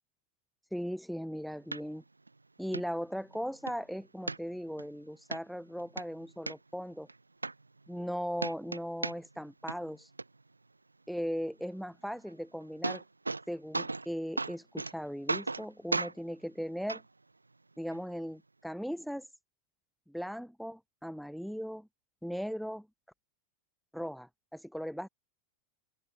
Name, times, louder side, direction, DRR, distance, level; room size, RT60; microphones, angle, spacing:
voice 1, 0.7-2.0 2.6-7.1 7.9-10.1 11.1-13.0 13.5-17.0 17.8-19.3 20.1-21.9 22.2-22.9 23.9-25.1, equal, ahead, 0.7 m, -38 dB
sound 1, 1.7-1.8 2.3-2.4 2.7-2.8 3.3-3.8 4.3-4.8 5.3-5.4 5.8-6.5 7.1-7.2 7.4-8.1 8.4-9.4 9.7-10.2 12.3-12.4 12.6-13.4 13.7-14.1 14.4-14.9 15.3-15.6 15.9-16.1 16.9-17.0 17.9-18.0, right 3 dB, 85° right, 1.0 m, -35 dB
figure-of-eight pair, 85°, 0 cm